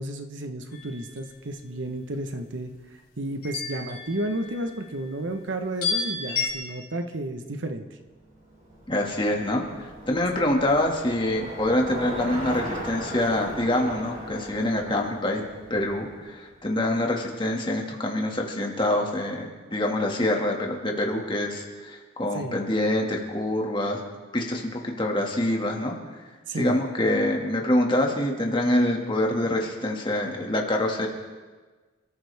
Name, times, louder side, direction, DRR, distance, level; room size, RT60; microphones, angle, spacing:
voice 1, 0.0-7.8 22.3-22.6 26.5-26.8, right 1 dB, 75° right, 6 dB, 1.2 m, -32 dB
sound 1, 0.7-1.3 3.4-4.8 5.8-6.5, left 4 dB, 55° left, 5.1 m, -31 dB
Bicycle, 8.2-16.5, equal, 35° right, 4.6 m, -38 dB
voice 2, 8.9-15.4 15.7-24.0 24.3-26.2 26.5-31.1, left 1 dB, 25° left, 0 dB, 2.1 m, -25 dB
29.0 x 14.0 x 3.5 m, 1.4 s
head